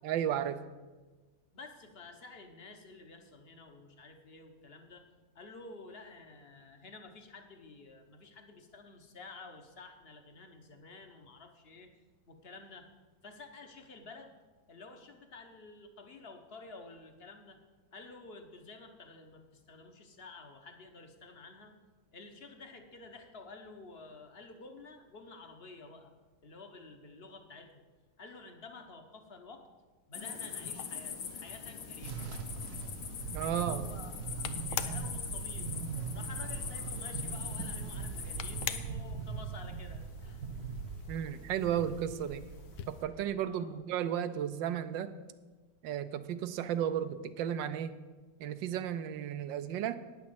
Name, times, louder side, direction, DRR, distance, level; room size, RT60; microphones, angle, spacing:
voice 1, 0.0-0.6 33.3-33.8 41.1-42.4 42.9-45.1 45.8-47.9 48.4-50.0, right 9 dB, 80° right, 12 dB, 1.3 m, -34 dB
voice 2, 1.5-5.1 5.3-11.9 12.3-12.9 13.2-14.3 14.7-17.6 17.9-21.7 22.1-26.1 26.4-27.8 28.2-29.7 30.1-32.2 33.4-35.8 36.1-40.4 43.4-43.8, left 3 dB, 40° left, 6 dB, 1.0 m, -51 dB
sound 1, 30.1-38.8, left 7 dB, 70° left, 1.8 m, -42 dB
sound 2, 30.3-43.1, left 10 dB, 85° left, 1.4 m, -47 dB
sound 3, 32.0-43.2, right 5 dB, 60° right, 1.2 m, -41 dB
9.6 x 7.4 x 7.7 m, 1.3 s
omnidirectional pair, 2.1 m